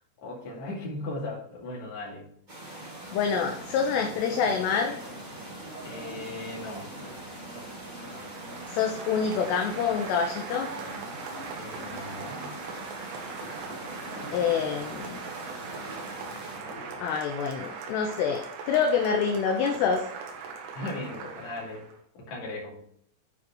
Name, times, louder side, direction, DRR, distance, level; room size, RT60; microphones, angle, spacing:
voice 1, 0.2-2.2 4.4-4.6 5.8-6.9 11.6-12.6 20.7-21.8 22.1-22.8, left 2 dB, 45° left, -3 dB, 2.9 m, -37 dB
sound 1, 2.5-16.6, right 1 dB, 20° right, 1.1 m, -43 dB
voice 2, 3.1-5.0 8.7-10.7 14.3-15.2 17.0-20.0, left 6 dB, 80° left, 3 dB, 2.6 m, -26 dB
sound 2, 3.3-17.0, right 1 dB, 65° right, 1.1 m, -46 dB
Applause, 7.5-22.0, right 5 dB, 85° right, 3.8 m, -41 dB
9.8 x 4.8 x 4.5 m, 0.67 s
omnidirectional pair, 5.5 m